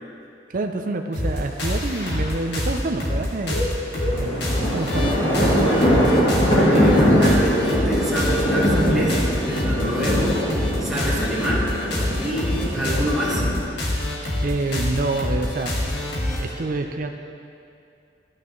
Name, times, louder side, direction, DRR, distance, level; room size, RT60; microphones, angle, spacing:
voice 1, 0.5-3.6 4.1-5.1 5.4-5.6 12.8-12.9 14.4-15.8 16.4-17.1, right 2 dB, 50° right, 5 dB, 0.5 m, -27 dB
sound 1, 1.1-16.5, left 1 dB, 65° left, 1.7 m, -26 dB
sound 2, 1.2-1.3 3.2-13.6, equal, 35° left, 2.4 m, -22 dB
voice 2, 5.5-10.4 10.8-11.7 12.1-13.5, equal, 5° right, -8 dB, 1.6 m, -27 dB
12.0 x 8.9 x 3.1 m, 2.5 s
head